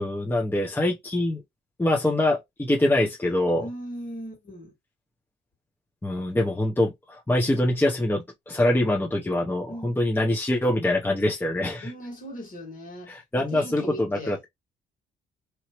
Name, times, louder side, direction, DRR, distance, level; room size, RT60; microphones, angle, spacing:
voice 1, 0.0-1.4 1.8-3.6 6.0-11.9 13.1-14.4, left 1 dB, 10° left, 0.8 m, -24 dB
voice 2, 3.6-4.7 9.7-10.0 11.8-14.4, equal, 45° left, 2.0 m, -38 dB
3.0 x 2.7 x 2.9 m
cardioid pair, 90°, 20 cm